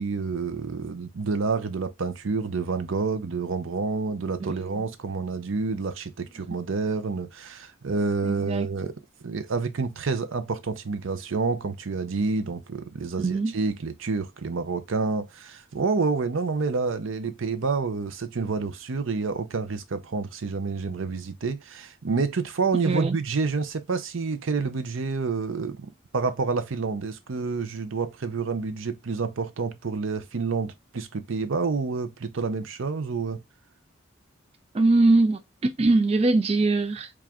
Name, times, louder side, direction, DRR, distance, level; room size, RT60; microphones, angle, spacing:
voice 1, 0.0-8.9 9.2-33.4, right 4 dB, 75° right, 0.6 m, -28 dB
voice 2, 4.4-4.8 8.2-8.7 13.2-13.5 22.8-23.2 34.7-37.1, right 2 dB, 30° right, 0.3 m, -22 dB
4.8 x 2.4 x 3.5 m
head